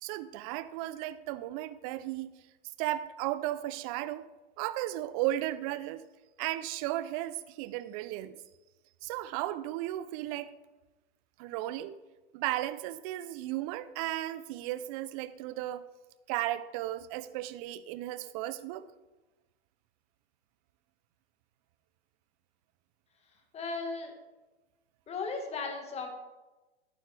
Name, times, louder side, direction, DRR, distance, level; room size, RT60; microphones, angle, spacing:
voice 1, 0.0-2.3 2.8-4.3 4.6-6.0 6.4-8.4 9.0-10.5 11.4-12.0 12.3-15.8 16.3-18.9, right 14 dB, 35° right, 15 dB, 0.5 m, -35 dB
voice 2, 23.3-24.1 25.1-26.1, left 4 dB, 20° left, 4 dB, 1.5 m, -36 dB
11.0 x 9.2 x 3.4 m, 1.1 s
hypercardioid pair, 120°, 32 cm